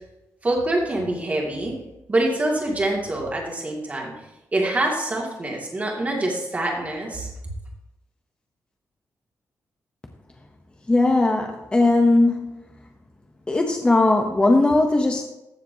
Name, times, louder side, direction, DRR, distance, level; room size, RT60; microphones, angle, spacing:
voice 1, 0.4-1.7 2.1-4.1 4.5-7.3, right 1 dB, 25° right, -1 dB, 2.3 m, -25 dB
voice 2, 10.9-12.6 13.5-15.2, left 2 dB, 15° left, 3 dB, 0.8 m, -19 dB
14.5 x 7.3 x 2.8 m, 0.92 s
wide cardioid pair, 155°, 6 cm